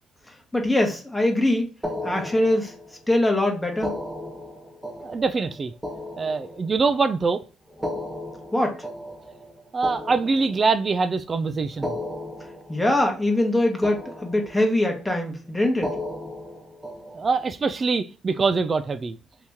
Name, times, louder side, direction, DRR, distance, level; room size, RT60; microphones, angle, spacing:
voice 1, 0.5-1.7 2.0-2.7 3.1-3.9 8.5-8.8 12.7-15.9, left 1 dB, 10° left, 1.0 m, -22 dB
sound 1, 1.8-3.1 3.7-7.0 7.7-11.0 11.7-13.6 13.8-14.9 15.7-17.5, left 1 dB, 10° right, 1.3 m, -35 dB
voice 2, 5.0-5.7 6.2-7.4 9.7-12.0 17.1-19.2, right 4 dB, 40° right, 0.3 m, -24 dB
2.9 x 2.8 x 3.5 m
supercardioid pair, 75°, 0 cm